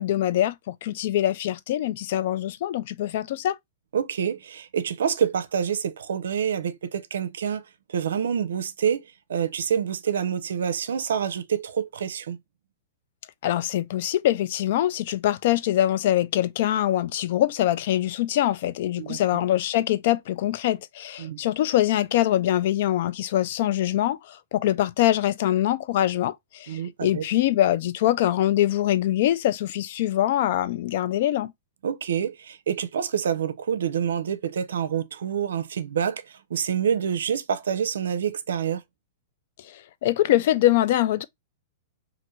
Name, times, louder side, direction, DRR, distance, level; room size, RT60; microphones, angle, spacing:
voice 1, 0.0-3.6 13.4-31.5 40.0-41.2, left 13 dB, 60° left, 0.3 m, -23 dB
voice 2, 3.9-7.6 7.9-12.4 19.0-19.2 21.2-21.4 26.7-27.2 31.8-38.8, right 8 dB, 85° right, 0.5 m, -27 dB
3.0 x 2.5 x 2.9 m
hypercardioid pair, 135°, 0 cm